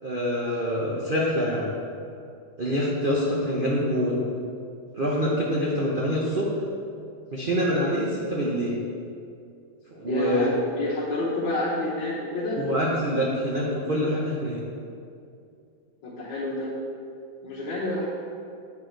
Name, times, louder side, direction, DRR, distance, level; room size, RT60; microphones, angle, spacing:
voice 1, 0.0-1.7 2.6-4.1 5.0-6.5 7.3-8.7 9.9-10.5 12.6-14.6, equal, 75° right, -4 dB, 0.4 m, -25 dB
voice 2, 10.1-12.6 16.0-16.7 17.4-18.1, left 1 dB, 70° left, -9 dB, 1.8 m, -29 dB
8.2 x 4.6 x 4.5 m, 2.4 s
omnidirectional pair, 2.2 m